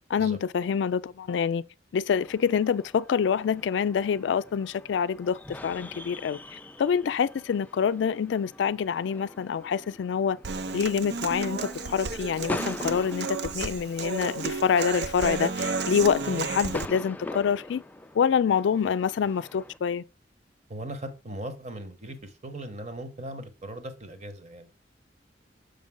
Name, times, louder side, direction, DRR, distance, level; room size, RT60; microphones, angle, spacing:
voice 1, 0.1-1.6 1.9-6.4 6.8-10.4 10.7-17.8 18.1-20.0, left 7 dB, 85° left, 0.3 m, -26 dB
sound 1, 2.1-19.8, left 2 dB, 10° left, 0.3 m, -43 dB
Human voice / Acoustic guitar, 10.4-16.9, right 4 dB, 65° right, 0.5 m, -32 dB
voice 2, 20.7-24.7, right 1 dB, 40° right, 1.1 m, -39 dB
6.6 x 5.2 x 3.6 m
head